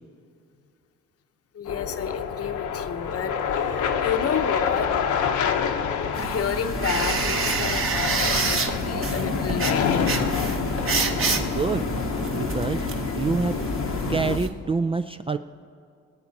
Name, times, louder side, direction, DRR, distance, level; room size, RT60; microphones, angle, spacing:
voice 1, 1.5-4.9 6.2-10.1, left 7 dB, 50° left, 9 dB, 0.9 m, -30 dB
sound 1, 1.6-14.4, left 7 dB, 75° left, 1.1 m, -27 dB
sound 2, 6.1-14.5, right 4 dB, 45° right, 1.4 m, -28 dB
voice 2, 11.0-11.9 12.3-12.8 13.2-13.6 14.1-15.4, right 4 dB, 20° right, 8 dB, 0.3 m, -27 dB
24.0 x 8.8 x 4.1 m, 2.5 s
cardioid pair, 90°, 30 cm